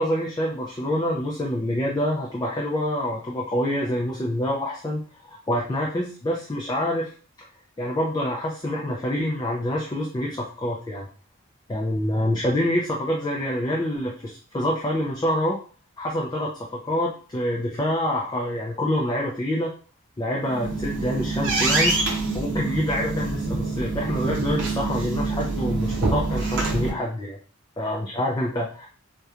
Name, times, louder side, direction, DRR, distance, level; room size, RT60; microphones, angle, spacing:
voice 1, 0.0-7.1 7.8-11.1 11.7-15.6 16.0-19.7 20.2-22.0 22.3-27.4 27.8-28.9, left 1 dB, 20° left, -2 dB, 0.3 m, -26 dB
sound 1, 20.4-26.9, right 2 dB, 55° right, 0.6 m, -25 dB
2.8 x 2.2 x 2.4 m, 0.40 s
head